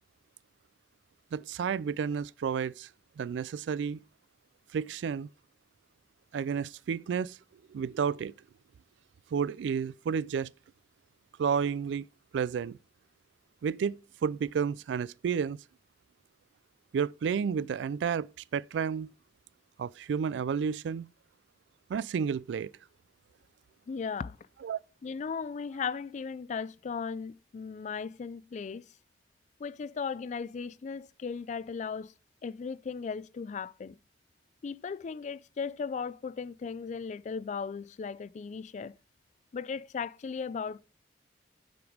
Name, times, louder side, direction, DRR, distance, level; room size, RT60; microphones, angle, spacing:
voice 1, 1.3-2.9 3.2-4.0 4.7-5.3 6.3-7.4 7.7-8.3 9.3-10.5 11.4-12.0 12.3-12.8 13.6-15.6 16.9-18.3 18.5-19.1 19.8-21.1 21.9-22.7 24.6-24.8, right 6 dB, 75° right, 0.3 m, -31 dB
voice 2, 23.9-24.4 25.0-28.9 29.6-32.1 32.4-34.0 34.6-38.9 39.5-40.8, left 5 dB, 40° left, 0.3 m, -37 dB
7.8 x 5.2 x 4.8 m
head